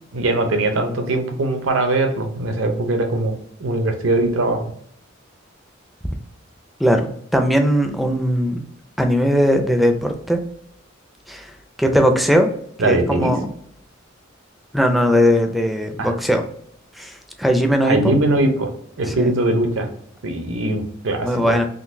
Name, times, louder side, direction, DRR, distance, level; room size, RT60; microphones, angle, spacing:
voice 1, 0.1-3.3 3.6-4.6 12.8-13.3 16.0-16.1 17.8-18.7 19.0-19.9 20.2-21.5, right 2 dB, 85° right, 5 dB, 0.7 m, -21 dB
voice 2, 6.8-8.6 9.0-10.4 11.3-11.5 11.8-12.5 12.8-13.5 14.7-16.4 17.0-18.2 19.1-19.3 21.2-21.6, equal, ahead, 5 dB, 0.4 m, -19 dB
3.8 x 2.5 x 2.6 m, 0.67 s
head